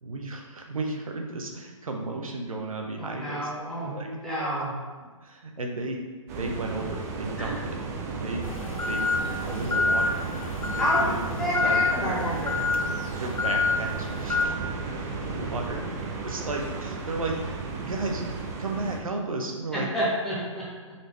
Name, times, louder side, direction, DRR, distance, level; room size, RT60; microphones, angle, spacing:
voice 1, 0.0-3.5 3.8-4.7 5.0-6.1 6.4-7.8 8.2-8.5 8.9-9.1 9.4-10.2 10.7-11.3 11.6-12.1 13.2-14.9 15.2-15.8 16.2-18.2 18.6-19.9, right 2 dB, 85° right, 2 dB, 0.7 m, -34 dB
voice 2, 3.0-4.7 7.4-7.5 10.7-11.0 11.4-12.6 15.4-15.5 16.2-16.3 19.7-20.9, equal, 5° left, -9 dB, 0.9 m, -30 dB
sound 1, 6.3-19.0, right 4 dB, 30° right, 0.5 m, -34 dB
sound 2, 8.4-14.5, left 4 dB, 90° left, 0.6 m, -27 dB
4.1 x 3.3 x 3.2 m, 1.4 s
hypercardioid pair, 145°, 17 cm